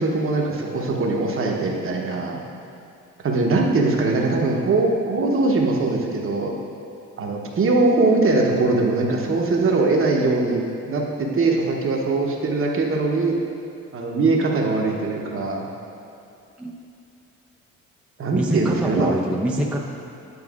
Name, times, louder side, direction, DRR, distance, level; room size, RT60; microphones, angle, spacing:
voice 1, 0.0-2.4 3.2-6.5 7.2-13.4 13.9-15.6 18.2-19.1, right 3 dB, 45° right, 0 dB, 0.9 m, -21 dB
voice 2, 18.3-19.8, right 1 dB, 5° right, -1 dB, 0.4 m, -24 dB
9.5 x 4.7 x 2.4 m, 2.6 s
cardioid pair, 90°, 30 cm